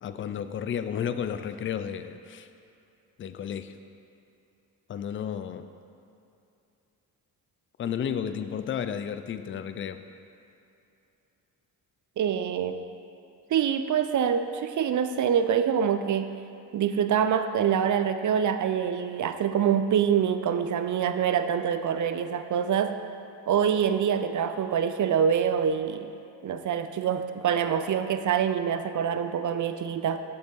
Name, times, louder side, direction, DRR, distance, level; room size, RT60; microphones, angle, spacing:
voice 1, 0.0-2.5 3.2-3.7 4.9-5.7 7.8-10.0, left 8 dB, 30° left, 10 dB, 0.3 m, -32 dB
voice 2, 12.2-12.8 13.5-16.4 16.7-23.0 23.5-26.1 26.4-30.2, right 8 dB, 40° right, 9 dB, 0.5 m, -25 dB
6.6 x 5.3 x 3.9 m, 2.8 s
hypercardioid pair, 45°, 47 cm